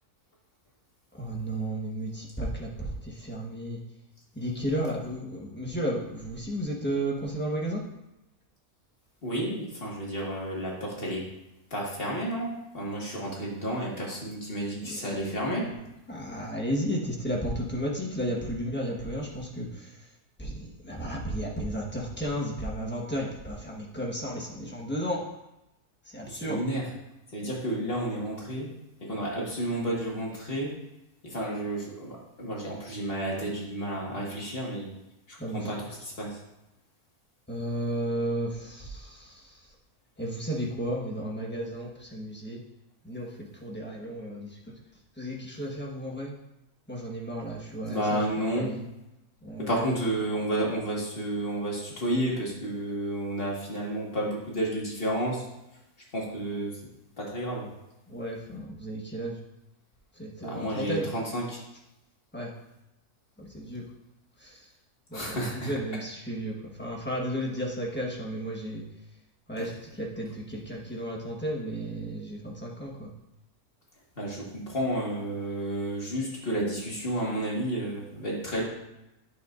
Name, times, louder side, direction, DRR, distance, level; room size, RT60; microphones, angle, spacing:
voice 1, 1.2-3.8 4.3-7.8 14.8-15.2 16.1-19.9 20.4-25.2 26.1-26.6 35.4-35.7 37.5-39.5 40.2-42.6 43.0-43.3 43.6-44.7 45.2-46.4 46.9-48.8 49.4-49.9 58.1-59.4 60.2-61.1 62.3-62.5 63.4-63.8 64.4-64.6 65.1-68.8 69.5-73.1, equal, 10° left, -2 dB, 1.2 m, -33 dB
voice 2, 9.2-11.3 11.7-15.6 26.3-26.9 27.3-28.7 29.1-30.8 31.2-34.9 35.3-36.4 47.9-48.7 49.6-55.4 56.1-56.8 57.2-57.7 60.4-61.6 65.1-65.7 69.6-69.7 74.2-78.6, right 1 dB, 40° left, -4 dB, 2.0 m, -31 dB
9.1 x 6.9 x 2.6 m, 0.90 s
omnidirectional pair, 1.6 m